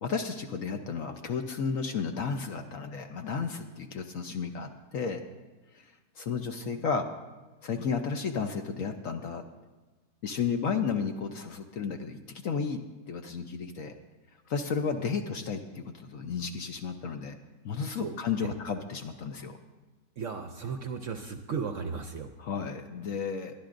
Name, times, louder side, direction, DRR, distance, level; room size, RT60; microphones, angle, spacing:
voice 1, 0.0-5.2 5.7-5.9 6.2-7.1 7.6-9.4 10.2-12.8 13.1-13.9 14.5-17.4 17.6-19.6 22.4-23.5, left 5 dB, 60° left, 5 dB, 1.0 m, -33 dB
voice 2, 20.2-22.3, right 5 dB, 60° right, 6 dB, 0.8 m, -35 dB
21.5 x 12.0 x 2.6 m, 1.2 s
omnidirectional pair, 1.9 m